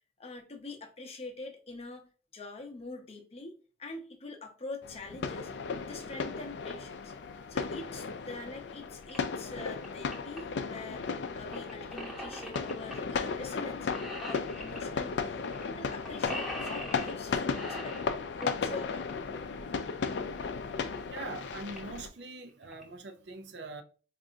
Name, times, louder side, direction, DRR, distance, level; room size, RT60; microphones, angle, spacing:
voice 1, 0.2-2.1 2.3-7.1 7.5-13.9 14.2-15.5 15.8-19.4, left 2 dB, 35° left, 0.7 m, -44 dB
sound 1, 4.8-22.1, left 5 dB, 70° left, 0.4 m, -35 dB
sound 2, 9.1-9.2 9.6-10.4 11.5-13.2 13.5-13.7 13.9-14.8 15.5-15.6 15.9-17.2 17.5-18.6 20.3-20.4 21.0-21.1 21.2-21.3 21.7-22.0 22.5-22.8, equal, ahead, 0.8 m, -41 dB
voice 2, 21.1-23.8, right 3 dB, 70° right, 0.5 m, -43 dB
4.6 x 2.5 x 2.7 m
head